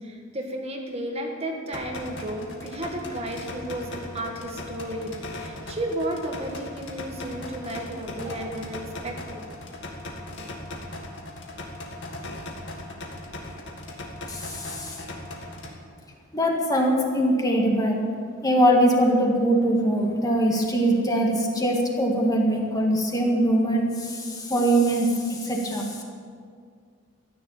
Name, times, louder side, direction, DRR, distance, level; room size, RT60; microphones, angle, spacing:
voice 1, 0.0-9.4, right 1 dB, 30° right, 1 dB, 1.5 m, -33 dB
sound 1, 1.7-15.7, left 1 dB, 60° left, 2.0 m, -38 dB
voice 2, 14.3-15.0 16.3-18.0 18.4-26.0, right 1 dB, 20° left, 0 dB, 1.8 m, -22 dB
14.5 x 9.9 x 7.2 m, 2.1 s
head